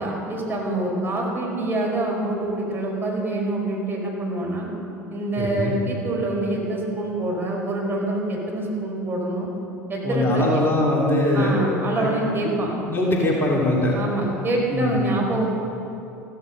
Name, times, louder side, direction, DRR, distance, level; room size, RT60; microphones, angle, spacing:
voice 1, 0.0-4.7 5.1-9.5 9.9-10.6 11.3-12.7 13.9-15.4, right 2 dB, 25° right, -2 dB, 4.7 m, -26 dB
voice 2, 5.4-5.7 10.0-11.5 11.9-12.1 12.9-13.9 14.7-15.0, left 1 dB, 25° left, -3 dB, 3.0 m, -21 dB
15.0 x 15.0 x 5.5 m, 2.8 s
figure-of-eight pair, 70°, 9 cm